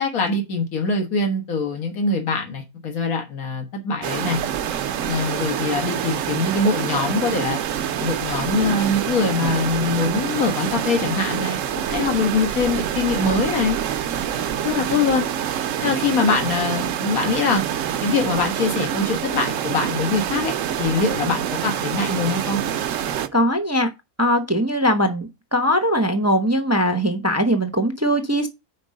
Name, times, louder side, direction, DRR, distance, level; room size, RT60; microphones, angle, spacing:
voice 1, 0.0-4.4 5.0-7.6 8.0-11.6 11.9-13.8 14.6-15.3 15.8-17.6 18.0-22.6, left 4 dB, 75° left, 1.9 m, -23 dB
sound 1, 4.0-23.3, right 9 dB, 65° right, 0.9 m, -26 dB
voice 2, 23.3-23.9 24.2-28.5, equal, 15° right, 0.6 m, -20 dB
5.3 x 4.7 x 6.3 m
omnidirectional pair, 1.5 m